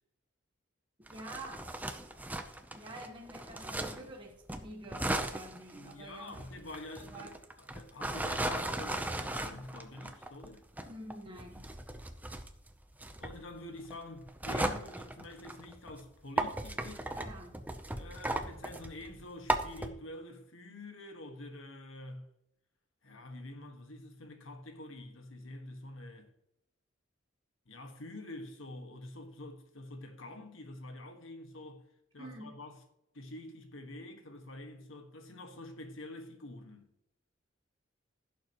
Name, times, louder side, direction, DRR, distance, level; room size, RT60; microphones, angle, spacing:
sound 1, 1.1-4.1 4.5-16.0 16.4-19.9, right 1 dB, 10° right, 0.6 m, -37 dB
voice 1, 1.1-1.7 2.7-6.4 7.0-7.3 10.9-11.7 17.1-17.6 32.2-32.6, right 1 dB, 25° right, 1.3 m, -47 dB
voice 2, 5.7-10.6 13.2-17.1 17.9-22.3 23.0-26.3 27.7-31.8 32.1-32.8 33.1-36.9, left 1 dB, 80° left, 1.6 m, -47 dB
16.0 x 7.1 x 3.0 m
head